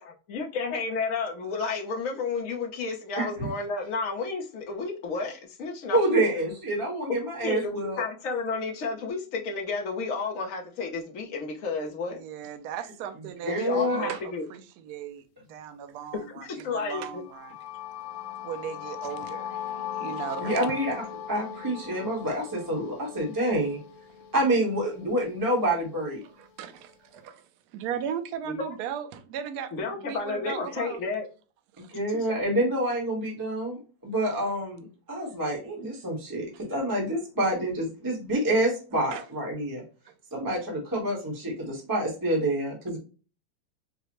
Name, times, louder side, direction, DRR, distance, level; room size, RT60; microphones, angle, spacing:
voice 1, 0.3-6.3 7.4-12.2 13.5-14.4 16.4-17.2 28.5-28.7 29.7-31.3, left 4 dB, 55° left, 0.9 m, -31 dB
voice 2, 3.2-3.5 5.9-8.0 13.4-14.0 20.4-20.9 21.3-23.8 24.3-26.2 31.8-39.8 40.3-43.0, right 1 dB, 15° right, 0.8 m, -27 dB
voice 3, 12.1-17.6 18.4-20.6 26.2-29.7 30.0-31.1 31.7-31.9 36.5-36.6 39.1-39.2, right 8 dB, 75° right, 0.9 m, -37 dB
sound 1, 17.2-25.1, left 9 dB, 90° left, 1.5 m, -39 dB
4.7 x 2.1 x 2.9 m
omnidirectional pair, 2.2 m